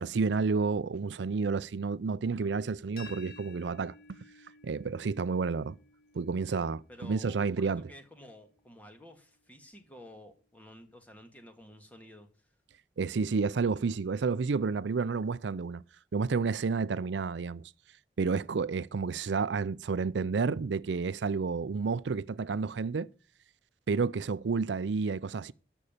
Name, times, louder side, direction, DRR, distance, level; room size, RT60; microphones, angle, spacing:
voice 1, 0.0-3.9 4.6-5.8 6.1-7.8 13.0-15.8 16.1-17.6 18.2-23.1 23.9-25.5, right 4 dB, 85° right, 0.5 m, -30 dB
sound 1, 3.0-8.7, left 3 dB, 55° left, 2.0 m, -55 dB
voice 2, 6.9-12.5, left 1 dB, 10° left, 1.8 m, -52 dB
13.0 x 5.5 x 8.7 m
head